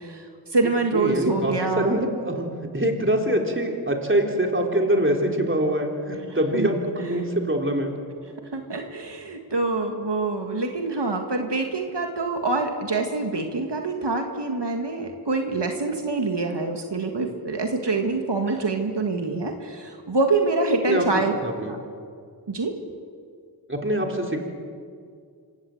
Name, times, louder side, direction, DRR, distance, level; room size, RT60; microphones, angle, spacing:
voice 1, 0.0-2.0 6.5-6.7 7.0-7.2 8.5-21.3 21.7-21.8 22.5-22.8, right 3 dB, 80° right, 4 dB, 1.9 m, -26 dB
voice 2, 0.9-2.5 2.7-7.9 20.9-21.1 21.4-21.8 23.7-24.4, right 1 dB, 30° right, 2 dB, 3.8 m, -24 dB
27.0 x 17.0 x 7.9 m, 2.2 s
wide cardioid pair, 40°, 41 cm